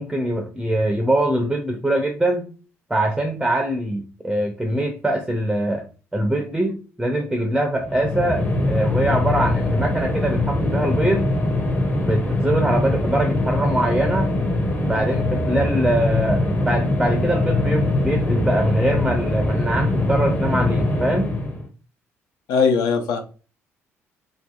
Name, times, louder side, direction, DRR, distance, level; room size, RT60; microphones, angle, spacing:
voice 1, 0.0-2.5 2.9-5.8 6.1-11.3 12.0-14.3 14.8-21.3, right 1 dB, 5° right, 4 dB, 0.5 m, -23 dB
sound 1, 7.8-21.7, left 1 dB, 25° left, 0.7 m, -22 dB
voice 2, 22.5-23.2, left 5 dB, 60° left, 5 dB, 0.5 m, -19 dB
2.6 x 2.3 x 2.3 m, 0.36 s
figure-of-eight pair, 45°, 7 cm